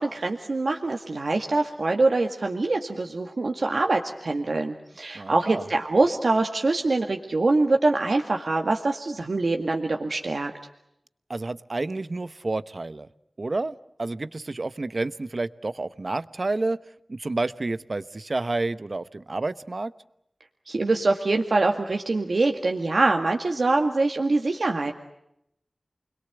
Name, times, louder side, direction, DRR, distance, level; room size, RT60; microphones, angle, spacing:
voice 1, 0.0-10.5 20.7-24.9, right 3 dB, 75° right, 3 dB, 1.9 m, -24 dB
voice 2, 5.1-5.7 11.3-13.1 13.4-16.8 17.1-19.9, right 2 dB, 60° right, 14 dB, 1.0 m, -30 dB
29.5 x 22.0 x 8.1 m, 0.78 s
wide cardioid pair, 50°, 0 cm